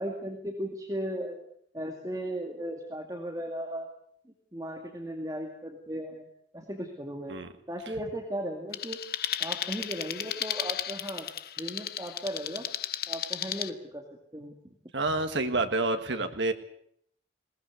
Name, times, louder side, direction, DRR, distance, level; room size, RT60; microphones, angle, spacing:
voice 1, 0.0-1.4 1.7-3.9 4.3-6.3 6.5-7.4 7.7-9.0 9.4-11.3 11.6-12.6 13.1-14.0 14.3-14.6, right 1 dB, 20° right, 2 dB, 2.2 m, -36 dB
sound 1, 8.7-13.7, left 12 dB, 55° left, 0.8 m, -34 dB
voice 2, 14.9-16.5, right 2 dB, 85° right, 7 dB, 1.7 m, -28 dB
21.0 x 19.0 x 8.2 m, 0.68 s
head